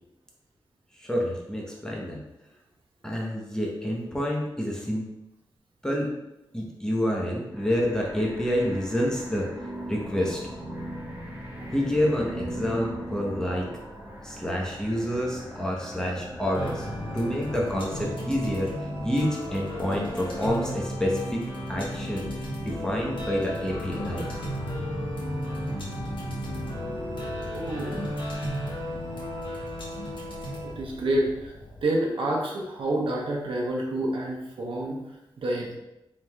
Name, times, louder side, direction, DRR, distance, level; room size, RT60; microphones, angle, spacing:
voice 1, 1.0-2.2 3.0-5.1 5.8-6.1 6.5-9.5 9.9-10.4 11.7-13.7 14.2-16.9 17.1-21.4 21.7-24.3, equal, 5° left, -3 dB, 0.9 m, -28 dB
sound 1, 7.5-18.1, right 1 dB, 20° right, 1.0 m, -39 dB
sound 2, 16.5-31.8, equal, 70° left, 1.2 m, -34 dB
voice 2, 27.5-28.0 30.8-31.5 31.8-35.0 35.4-35.8, right 1 dB, 85° right, -1 dB, 0.9 m, -28 dB
4.6 x 3.8 x 2.3 m, 0.93 s
wide cardioid pair, 105°, 9 cm